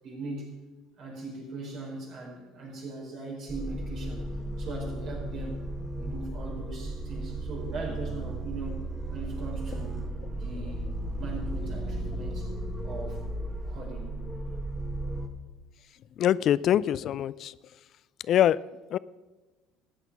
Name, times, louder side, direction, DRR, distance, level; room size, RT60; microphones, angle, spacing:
voice 1, 0.0-0.5 1.0-4.3 4.6-5.6 6.0-8.8 9.1-12.5 12.8-13.2 13.6-14.2, right 2 dB, 60° right, -1 dB, 4.9 m, -40 dB
sound 1, 3.5-15.3, right 1 dB, 25° right, 1.6 m, -35 dB
voice 2, 16.2-17.5 18.3-18.6 18.9-19.0, left 11 dB, 55° left, 19 dB, 0.3 m, -23 dB
14.0 x 9.0 x 5.7 m, 1.2 s
supercardioid pair, 80°, 0 cm